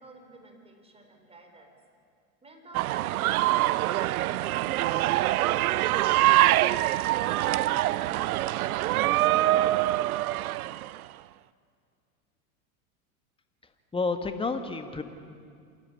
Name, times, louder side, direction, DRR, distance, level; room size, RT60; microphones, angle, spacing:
voice 1, 0.0-1.7 2.4-6.2, right 2 dB, 15° right, 3 dB, 4.1 m, -51 dB
sound 1, 2.7-11.0, right 16 dB, 80° right, 0.6 m, -24 dB
voice 2, 13.9-15.0, left 4 dB, 10° left, 7 dB, 1.7 m, -30 dB
27.0 x 11.5 x 9.9 m, 2.2 s
hypercardioid pair, 105°, 42 cm